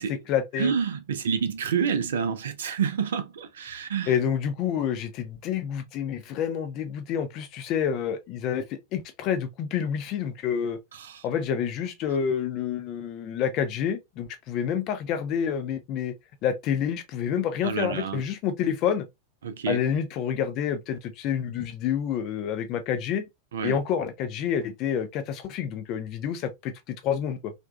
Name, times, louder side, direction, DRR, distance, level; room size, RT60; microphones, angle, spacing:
voice 1, 0.0-0.7 4.1-10.8 11.2-16.1 16.4-19.1 19.7-23.3 23.6-27.5, left 8 dB, 40° left, 0.6 m, -28 dB
voice 2, 0.6-4.2 10.9-11.2 17.6-18.2 19.4-19.8 23.5-23.8, right 6 dB, 65° right, 0.4 m, -28 dB
2.5 x 2.3 x 2.3 m
figure-of-eight pair, 90°, 0 cm